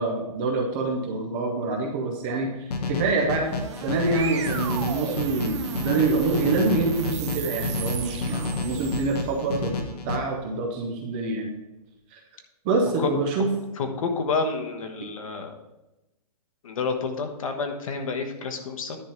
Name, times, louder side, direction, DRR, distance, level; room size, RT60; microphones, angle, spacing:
voice 1, 0.0-3.5 3.8-11.5 12.1-12.2 12.6-13.5, right 3 dB, 15° right, 1 dB, 0.6 m, -26 dB
sound 1, 2.7-10.2, left 3 dB, 80° left, 1.3 m, -31 dB
sound 2, 3.2-9.5, right 6 dB, 45° right, 0.9 m, -34 dB
voice 2, 13.8-15.5 16.6-19.0, left 4 dB, 55° left, 5 dB, 1.3 m, -29 dB
10.5 x 3.7 x 6.8 m, 0.97 s
hypercardioid pair, 180°, 20 cm